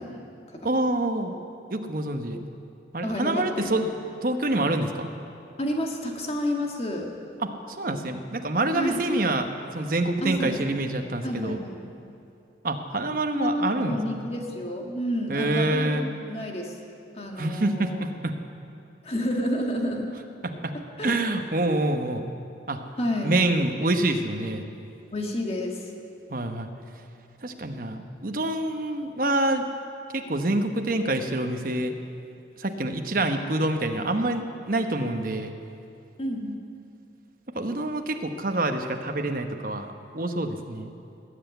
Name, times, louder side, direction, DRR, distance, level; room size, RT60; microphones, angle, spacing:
voice 1, 0.0-0.7 3.0-3.9 5.6-7.1 8.7-9.0 10.2-10.6 11.2-11.8 13.3-16.8 17.1-18.0 19.0-20.1 21.0-21.2 23.0-23.3 25.1-25.9 36.2-36.6, equal, 30° left, 1 dB, 1.7 m, -30 dB
voice 2, 0.6-1.3 1.7-2.4 2.9-3.8 4.2-5.1 7.4-7.5 7.8-11.6 12.6-14.3 15.3-16.0 17.4-18.3 20.4-20.7 21.0-22.2 22.7-22.8 23.2-24.6 26.3-26.7 27.4-29.7 30.1-32.0 32.6-35.5 37.5-40.9, right 2 dB, 50° right, 5 dB, 1.0 m, -26 dB
19.5 x 8.1 x 9.1 m, 2.6 s
head